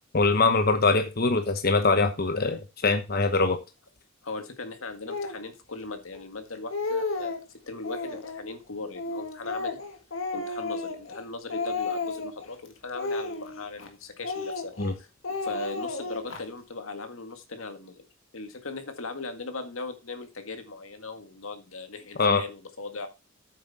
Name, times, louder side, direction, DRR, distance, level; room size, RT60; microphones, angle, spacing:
voice 1, 0.1-3.6 14.8-14.9 22.2-22.4, left 3 dB, 50° left, 7 dB, 1.0 m, -23 dB
voice 2, 4.2-7.3 7.7-9.8 10.3-15.1 15.4-18.0 18.3-23.1, left 3 dB, 90° left, 7 dB, 1.9 m, -38 dB
Speech, 5.1-5.4 6.1-6.2 6.5-7.4 7.8-8.4 8.9-11.2 11.5-12.4 12.9-13.9 14.2-14.9 15.2-16.4, left 3 dB, 75° left, 1.9 m, -32 dB
8.7 x 7.2 x 4.2 m, 0.26 s
head